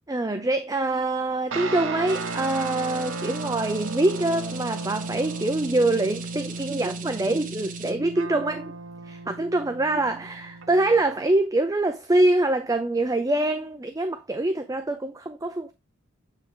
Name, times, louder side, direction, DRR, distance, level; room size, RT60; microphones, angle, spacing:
voice 1, 0.1-8.7 9.0-15.7, right 2 dB, 15° right, 0.5 m, -24 dB
sound 1, 1.5-11.2, right 3 dB, 70° right, 0.9 m, -35 dB
sound 2, 2.1-7.9, right 7 dB, 40° right, 1.0 m, -41 dB
9.0 x 3.3 x 3.9 m
head